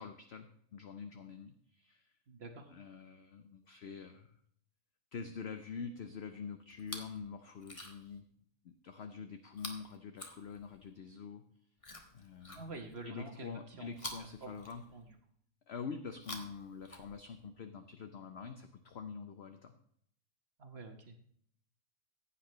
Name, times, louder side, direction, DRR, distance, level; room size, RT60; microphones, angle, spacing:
voice 1, 0.0-2.1 2.7-4.3 5.1-8.2 8.6-11.4 12.1-12.8 13.0-14.8 15.7-19.7, left 5 dB, 55° left, 7 dB, 0.8 m, -46 dB
voice 2, 2.3-2.7 12.5-13.9 14.2-14.6 14.9-15.1 20.6-21.1, right 3 dB, 45° right, 5 dB, 1.2 m, -48 dB
Chewing mastication, 6.7-7.2 7.6-8.2 9.5-10.9 11.8-13.1 13.9-15.2 16.1-17.5 18.4-18.5, left 2 dB, 25° left, 1.2 m, -49 dB
15.0 x 8.6 x 3.1 m, 0.66 s
omnidirectional pair, 1.6 m